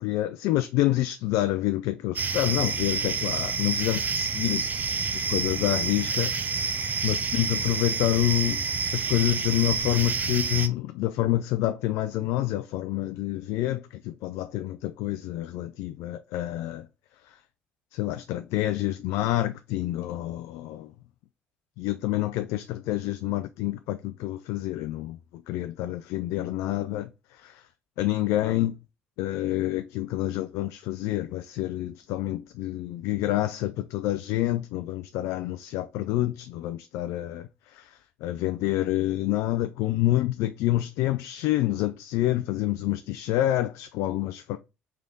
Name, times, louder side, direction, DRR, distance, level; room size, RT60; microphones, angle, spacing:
voice 1, 0.0-4.6 5.1-8.6 8.9-16.9 17.2-17.4 17.9-20.9 21.8-27.7 28.0-28.7 29.2-44.6, left 15 dB, 70° left, 0.4 m, -28 dB
sound 1, 2.2-10.7, right 5 dB, 35° right, 0.6 m, -28 dB
3.7 x 3.3 x 3.8 m
hypercardioid pair, 65°, 5 cm